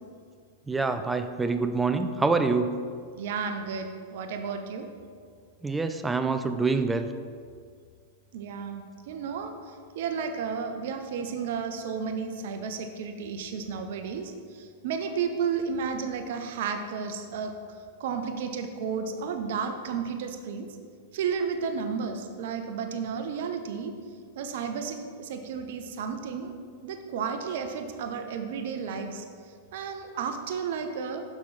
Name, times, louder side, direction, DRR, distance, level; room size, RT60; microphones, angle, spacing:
voice 1, 0.7-2.7 5.6-7.1, right 4 dB, 10° right, 8 dB, 0.4 m, -26 dB
voice 2, 3.2-4.9 8.3-9.5 9.9-17.5 18.0-20.7 21.1-23.9 24.4-26.5 26.8-29.2 29.7-31.2, right 6 dB, 65° right, 6 dB, 0.7 m, -32 dB
6.1 x 5.8 x 4.2 m, 2.1 s
hypercardioid pair, 100°, 0 cm